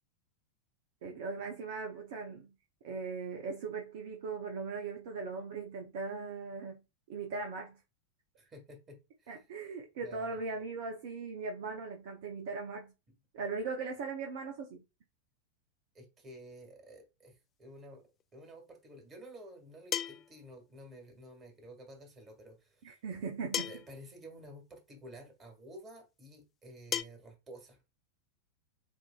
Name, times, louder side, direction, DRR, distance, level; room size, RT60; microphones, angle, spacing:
voice 1, 1.0-2.5 2.8-6.8 7.1-7.8 9.3-12.9 13.3-14.8 22.8-23.7, right 4 dB, 50° right, 0.7 m, -39 dB
voice 2, 8.4-9.3 10.0-10.4 15.9-23.0 23.6-27.8, right 1 dB, 20° right, 1.9 m, -52 dB
sound 1, 18.2-18.3 19.9-20.4 21.9-22.0 23.5-24.0 25.2-25.3 26.9-27.0, left 9 dB, 25° left, 0.4 m, -35 dB
7.1 x 2.7 x 2.3 m
figure-of-eight pair, 90°, 0 cm